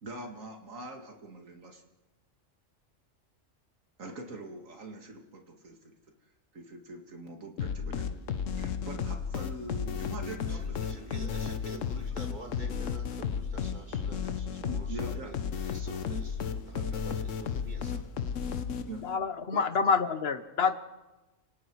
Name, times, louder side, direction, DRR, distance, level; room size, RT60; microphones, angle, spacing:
voice 1, 0.0-1.8 4.0-5.9 6.5-8.1 8.5-11.3 12.1-12.2 14.6-15.3 18.8-19.0 19.5-19.6, right 2 dB, 85° right, 3 dB, 2.6 m, -43 dB
sound 1, 7.6-19.2, left 6 dB, 75° left, 1.3 m, -34 dB
voice 2, 10.8-14.9 15.2-15.4 15.6-18.0, right 2 dB, 35° right, 3 dB, 2.4 m, -49 dB
voice 3, 19.0-20.8, left 5 dB, 55° left, 11 dB, 1.3 m, -27 dB
29.5 x 18.5 x 4.7 m, 1.0 s
omnidirectional pair, 1.3 m